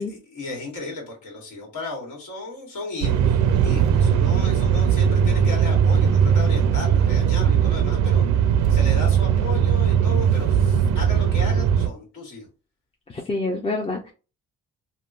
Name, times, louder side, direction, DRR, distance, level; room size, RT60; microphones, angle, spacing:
voice 1, 0.0-8.3 8.7-12.5, left 2 dB, 80° left, 0 dB, 1.5 m, -35 dB
sound 1, 3.0-11.9, right 8 dB, 85° right, 0.5 m, -19 dB
voice 2, 13.1-14.1, left 2 dB, 20° left, 1 dB, 0.5 m, -27 dB
3.5 x 2.2 x 2.4 m, 0.33 s
cardioid pair, 90°, 30 cm